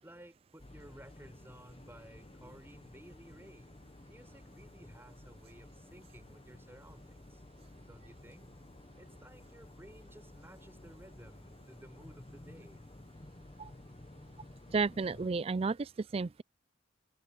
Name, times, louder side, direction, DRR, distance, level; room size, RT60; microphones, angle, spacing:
voice 1, 0.0-3.7 4.1-7.4 7.9-8.5 9.0-12.8, right 1 dB, 10° right, 5.9 m, -56 dB
sound 1, 0.6-15.3, left 1 dB, 30° left, 0.9 m, -54 dB
voice 2, 14.7-16.4, right 4 dB, 30° right, 0.3 m, -32 dB
head